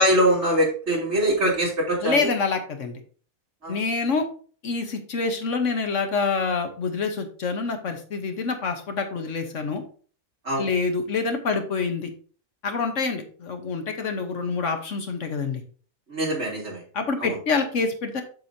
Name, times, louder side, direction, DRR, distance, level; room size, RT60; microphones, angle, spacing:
voice 1, 0.0-2.2 3.6-3.8 10.4-10.7 16.1-16.8 17.2-17.3, equal, 50° right, -3 dB, 3.3 m, -22 dB
voice 2, 2.0-3.0 3.7-4.3 4.6-9.8 10.6-12.1 12.6-15.6 16.9-18.2, left 4 dB, 60° left, 6 dB, 1.3 m, -26 dB
7.8 x 6.9 x 2.7 m, 0.42 s
omnidirectional pair, 1.5 m